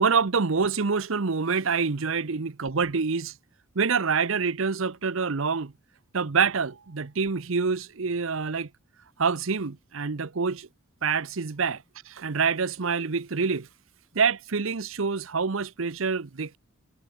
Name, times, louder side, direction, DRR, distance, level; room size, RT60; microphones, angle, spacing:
voice 1, 0.0-3.3 3.8-5.7 6.1-8.7 9.2-10.7 11.0-13.7 14.1-16.6, right 5 dB, 65° right, 0.8 m, -26 dB
head